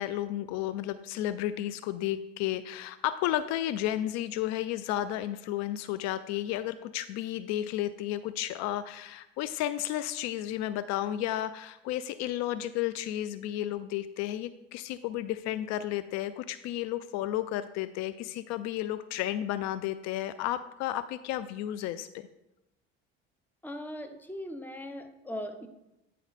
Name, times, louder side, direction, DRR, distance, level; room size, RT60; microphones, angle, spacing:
voice 1, 0.0-22.2, left 13 dB, 65° left, 13 dB, 0.4 m, -32 dB
voice 2, 23.6-25.7, left 1 dB, 5° left, 7 dB, 0.9 m, -39 dB
9.3 x 4.2 x 4.1 m, 0.89 s
hypercardioid pair, 80°, 30 cm